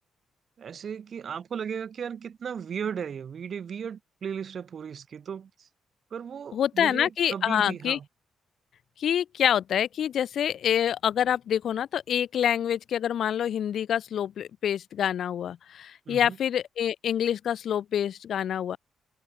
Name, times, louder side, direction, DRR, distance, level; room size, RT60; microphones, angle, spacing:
voice 1, 0.6-5.7 6.1-8.0 16.1-16.4, right 7 dB, 50° right, 3.9 m, -36 dB
voice 2, 6.5-8.0 9.0-18.8, left 9 dB, 65° left, 1.4 m, -26 dB
cardioid pair, 120°, 0 cm